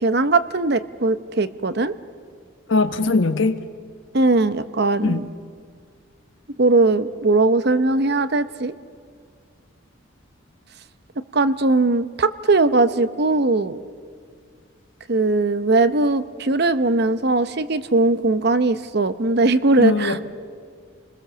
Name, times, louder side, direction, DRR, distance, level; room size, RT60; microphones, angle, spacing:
voice 1, 0.0-1.9 4.1-5.2 6.6-8.7 11.3-13.8 15.1-20.2, right 2 dB, 50° right, 12 dB, 0.8 m, -19 dB
voice 2, 2.7-3.6 5.0-5.3 19.8-20.2, left 3 dB, 65° left, 10 dB, 1.1 m, -20 dB
29.0 x 21.0 x 7.0 m, 2.1 s
head